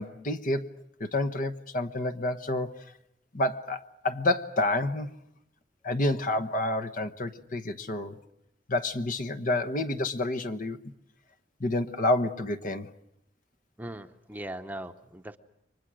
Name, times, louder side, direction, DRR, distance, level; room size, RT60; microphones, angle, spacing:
voice 1, 0.0-2.8 3.3-5.1 5.8-8.2 8.7-10.8 11.6-12.9, left 2 dB, 45° left, 1.1 m, -29 dB
voice 2, 13.8-15.4, right 1 dB, 10° right, 0.9 m, -39 dB
30.0 x 24.5 x 6.3 m
head